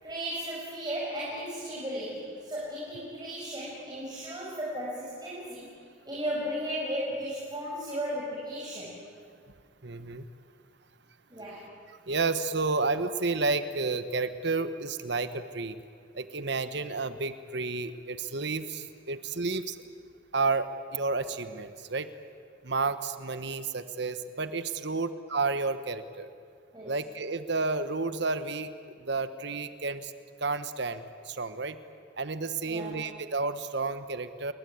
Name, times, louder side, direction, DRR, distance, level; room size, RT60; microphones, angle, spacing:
voice 1, 0.0-5.7 6.0-8.9 11.3-11.6 26.7-26.9 32.7-33.0, equal, 20° right, -6 dB, 6.1 m, -35 dB
voice 2, 9.8-10.3 11.9-15.8 16.1-19.8 20.3-22.1 22.6-26.3 26.8-28.7 29.0-30.1 30.4-31.8 32.2-34.5, right 3 dB, 60° right, 11 dB, 1.2 m, -31 dB
29.0 x 21.5 x 9.4 m, 2.2 s
head